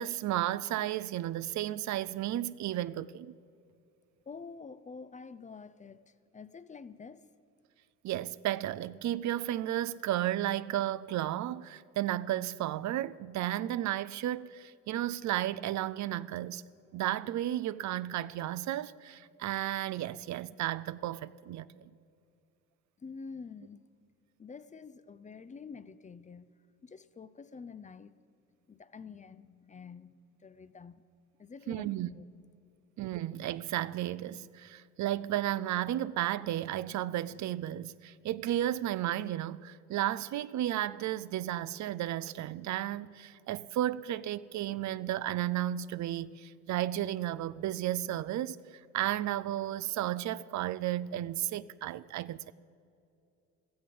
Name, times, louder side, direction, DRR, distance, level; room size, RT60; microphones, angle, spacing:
voice 1, 0.0-3.3 8.0-16.6 16.9-21.9 31.7-32.1 33.0-52.5, right 13 dB, 70° right, 0.5 m, -33 dB
voice 2, 4.3-7.3 23.0-23.8 24.4-26.5 26.8-28.2 28.7-31.0 31.4-32.2, left 5 dB, 25° left, 0.5 m, -48 dB
16.0 x 14.0 x 5.2 m
cardioid pair, 90°, 30 cm